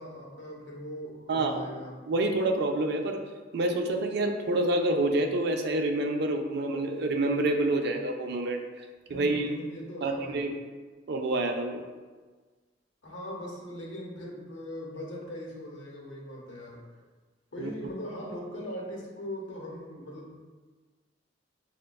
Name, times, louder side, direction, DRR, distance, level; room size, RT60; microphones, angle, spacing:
voice 1, 0.0-1.9 9.1-10.4 13.0-16.8 17.5-20.4, equal, 80° left, -2 dB, 0.8 m, -40 dB
voice 2, 1.3-1.6 2.1-3.2 3.5-8.6 9.1-9.5 10.0-10.6 11.1-11.8 17.6-17.7, right 2 dB, 60° right, 4 dB, 0.4 m, -27 dB
6.4 x 2.2 x 2.2 m, 1.4 s
head